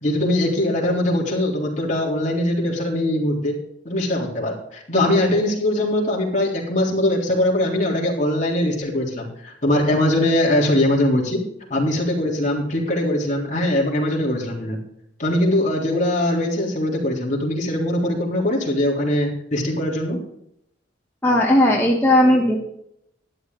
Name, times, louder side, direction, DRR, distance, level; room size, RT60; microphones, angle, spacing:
voice 1, 0.0-3.6 3.9-11.4 11.7-14.8 15.2-20.2, left 1 dB, 40° left, -2 dB, 3.6 m, -21 dB
voice 2, 21.2-22.6, left 1 dB, 10° left, -2 dB, 1.4 m, -16 dB
12.5 x 10.5 x 4.0 m, 0.75 s
head